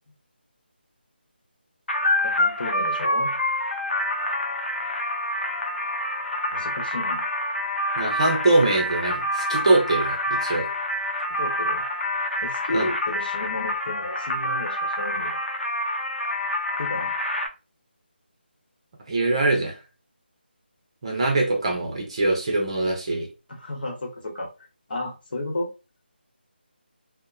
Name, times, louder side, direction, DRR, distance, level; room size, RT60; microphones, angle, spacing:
sound 1, 1.9-17.5, left 1 dB, 85° left, 0.6 m, -27 dB
voice 1, 2.2-3.3 6.5-7.3 11.3-11.9 12.4-15.4 16.8-17.1 23.5-24.5 24.9-25.7, left 2 dB, 55° left, 1.0 m, -33 dB
voice 2, 8.0-10.7 12.7-12.9 19.1-19.8 21.0-23.3, right 2 dB, 35° right, 0.6 m, -23 dB
2.8 x 2.0 x 2.3 m
figure-of-eight pair, 170°, 6 cm